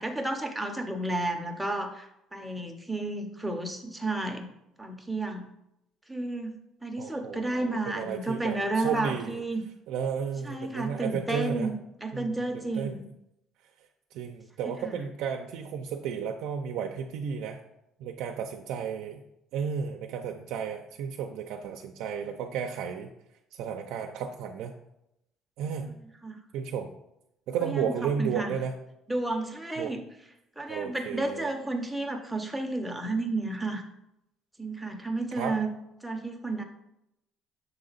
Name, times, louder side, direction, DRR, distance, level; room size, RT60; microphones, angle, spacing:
voice 1, 0.0-4.5 4.8-5.4 6.1-6.6 6.8-9.6 10.4-11.8 12.0-13.1 14.8-14.9 26.2-26.4 27.6-27.9 28.2-28.5 29.1-30.0 30.6-33.8 34.6-35.7 36.0-36.6, right 2 dB, 5° right, 3 dB, 0.7 m, -32 dB
voice 2, 7.0-9.4 9.9-11.7 12.1-13.0 14.1-17.6 18.0-19.2 19.5-23.1 23.5-24.7 25.6-25.9 26.5-26.9 27.5-28.7 29.8-29.9 30.7-31.5 35.3-35.6, right 7 dB, 75° right, 3 dB, 0.5 m, -33 dB
6.8 x 3.8 x 4.0 m, 0.84 s
cardioid pair, 135°, 0 cm